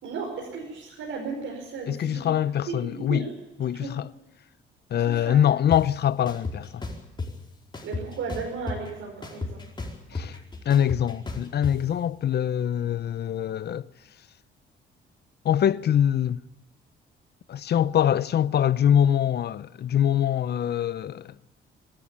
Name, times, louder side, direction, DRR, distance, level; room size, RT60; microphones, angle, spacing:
voice 1, 0.0-2.3 2.7-3.3 3.8-3.9 4.9-5.4 7.8-9.6 10.1-10.4, right 4 dB, 75° right, 5.6 m, -35 dB
voice 2, 1.9-3.3 3.6-4.1 4.9-6.8 10.1-10.4 10.6-13.9 15.4-16.4 17.5-21.3, left 10 dB, 55° left, 0.7 m, -24 dB
sound 1, 5.7-5.8 6.3-7.3 7.7-8.9 9.2-11.7, left 3 dB, 25° left, 4.7 m, -33 dB
24.5 x 13.0 x 8.6 m
cardioid pair, 90°, 20 cm